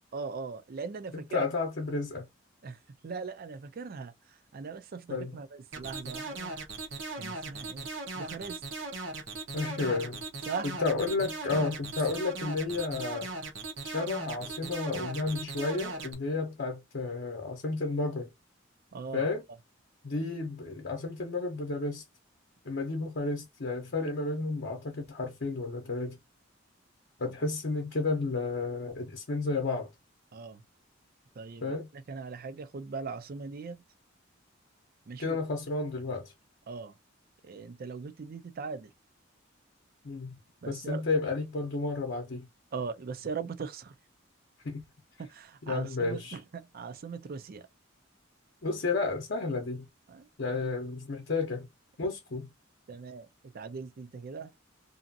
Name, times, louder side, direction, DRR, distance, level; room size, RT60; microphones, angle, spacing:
voice 1, 0.1-1.5 2.6-2.8 3.0-6.5 7.2-7.9 8.1-8.6 10.4-10.7 11.5-11.6 18.9-19.3 30.3-30.6 31.4-33.8 35.1-35.4 36.7-37.0 37.4-38.9 40.6-41.1 42.7-43.9 45.2-47.7 50.1-50.3 52.9-53.3 53.5-54.5, right 5 dB, 50° right, 0.4 m, -40 dB
voice 2, 1.1-2.3 5.1-5.4 9.5-10.2 10.8-13.3 13.8-18.3 19.1-19.4 20.0-22.0 22.6-26.2 27.2-29.9 31.6-31.9 35.2-36.3 40.0-40.4 40.7-42.5 44.6-44.8 45.6-46.4 48.6-49.9 50.4-51.7 52.0-52.5, left 3 dB, 55° left, 0.7 m, -32 dB
sound 1, 5.7-16.1, right 3 dB, 65° right, 0.9 m, -38 dB
2.6 x 2.4 x 2.6 m
head